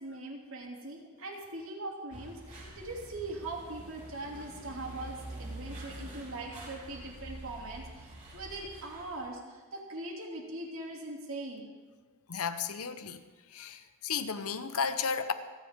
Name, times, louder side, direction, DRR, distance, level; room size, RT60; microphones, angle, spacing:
voice 1, 0.0-11.6, right 2 dB, 65° right, -1 dB, 2.8 m, -41 dB
sound 1, 2.1-9.3, right 1 dB, 30° right, 4.1 m, -46 dB
voice 2, 12.3-13.2 13.5-15.3, left 6 dB, 85° left, 10 dB, 0.9 m, -33 dB
27.5 x 9.9 x 3.7 m, 1.4 s
head